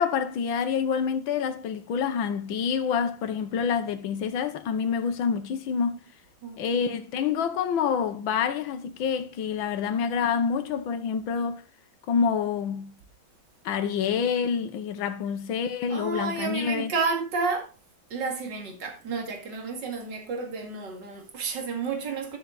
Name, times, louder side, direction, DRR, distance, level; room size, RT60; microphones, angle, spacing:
voice 1, 0.0-6.1 6.6-11.6 12.1-12.9 13.7-16.9, left 6 dB, 75° left, 1.8 m, -27 dB
voice 2, 6.4-6.9 15.9-17.7 18.1-22.4, right 4 dB, 60° right, 2.9 m, -31 dB
12.0 x 7.3 x 3.9 m
omnidirectional pair, 2.2 m